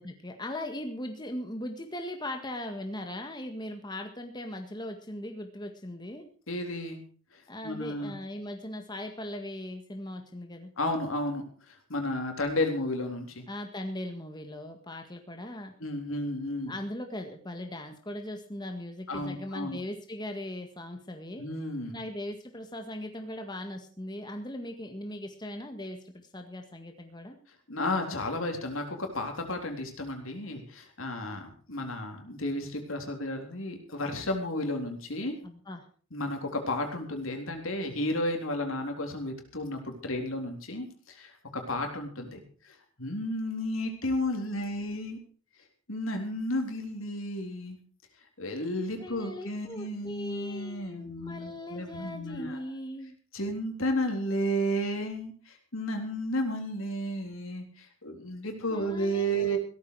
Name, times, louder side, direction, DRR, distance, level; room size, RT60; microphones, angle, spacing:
voice 1, 0.0-6.3 7.5-10.7 13.5-15.7 16.6-21.5 21.9-27.4 35.4-35.8 49.0-53.2 58.7-59.6, left 1 dB, 20° left, 5 dB, 1.8 m, -39 dB
voice 2, 6.5-7.0 7.3-8.1 10.8-13.5 15.8-16.7 19.1-19.8 21.4-22.0 27.7-35.4 36.1-45.2 45.9-47.8 48.4-52.6 53.3-59.6, left 1 dB, 75° left, 4 dB, 3.8 m, -33 dB
16.5 x 13.5 x 4.8 m, 0.41 s
head